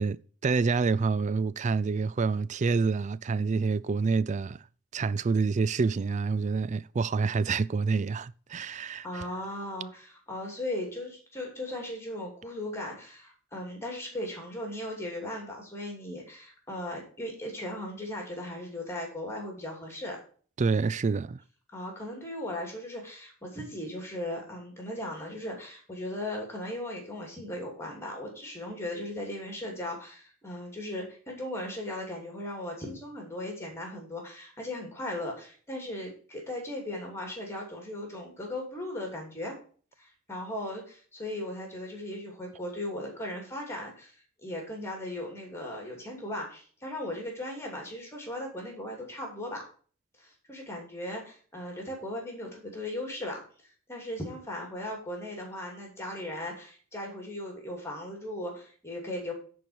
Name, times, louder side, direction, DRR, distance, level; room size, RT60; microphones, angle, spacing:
voice 1, 0.0-4.6 4.9-9.3 20.6-21.4, right 4 dB, 35° right, 0.3 m, -27 dB
voice 2, 9.0-20.2 21.7-39.5 40.0-44.1 44.4-49.6 50.2-53.4 53.9-59.3, left 1 dB, 10° left, 2.8 m, -37 dB
10.5 x 4.7 x 7.0 m
head